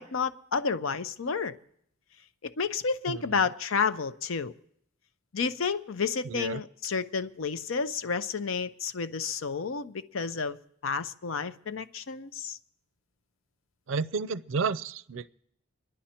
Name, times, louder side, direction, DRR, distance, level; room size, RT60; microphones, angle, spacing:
voice 1, 0.0-1.5 2.4-4.5 5.3-10.6 10.8-12.6, left 5 dB, 75° left, 12 dB, 0.7 m, -31 dB
voice 2, 3.1-3.5 6.2-6.6 13.9-15.3, right 5 dB, 70° right, 17 dB, 0.5 m, -31 dB
26.5 x 10.5 x 4.4 m, 0.73 s
head